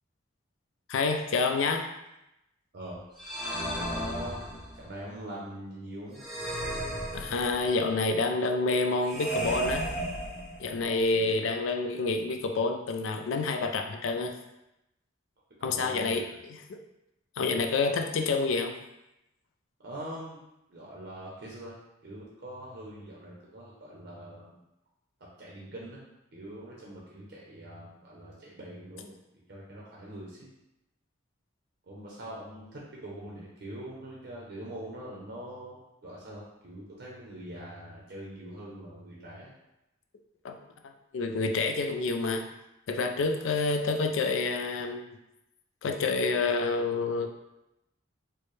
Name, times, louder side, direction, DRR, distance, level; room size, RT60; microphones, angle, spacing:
voice 1, 0.9-1.9 7.1-9.9 10.6-14.4 15.6-16.8 17.4-18.8 40.4-40.6 41.1-42.5 42.9-45.2 45.8-47.3, left 3 dB, 75° left, 5 dB, 0.4 m, -28 dB
sound 1, 3.2-4.9 6.2-7.8 9.0-10.9, right 1 dB, ahead, 0.7 m, -34 dB
voice 2, 3.6-4.5 4.7-6.2 11.1-11.4 15.6-16.4 19.8-20.4 20.7-21.8 22.0-24.6 25.4-26.0 26.3-29.2 29.5-30.5 31.8-39.5, right 1 dB, 55° right, -4 dB, 0.6 m, -43 dB
4.5 x 2.1 x 3.2 m, 0.89 s
head